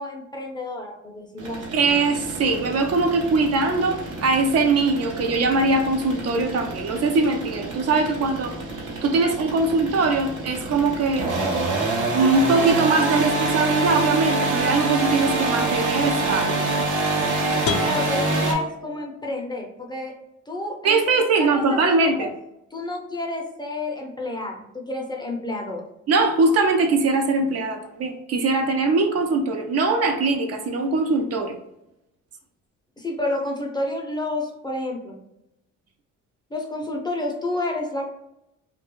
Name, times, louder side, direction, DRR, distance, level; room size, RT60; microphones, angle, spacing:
voice 1, 0.0-1.6 17.8-20.1 20.5-22.3 22.7-25.8 33.0-35.2 36.5-38.1, left 2 dB, 15° left, 1 dB, 0.5 m, -30 dB
sound 1, 1.4-18.5, right 2 dB, 80° right, 0.8 m, -27 dB
voice 2, 1.7-11.3 12.1-16.6 20.8-22.3 26.1-31.6, right 3 dB, 55° right, 4 dB, 0.5 m, -21 dB
sound 2, 17.6-19.6, left 6 dB, 70° left, 0.5 m, -31 dB
2.3 x 2.2 x 3.0 m, 0.85 s
cardioid pair, 90°, 30 cm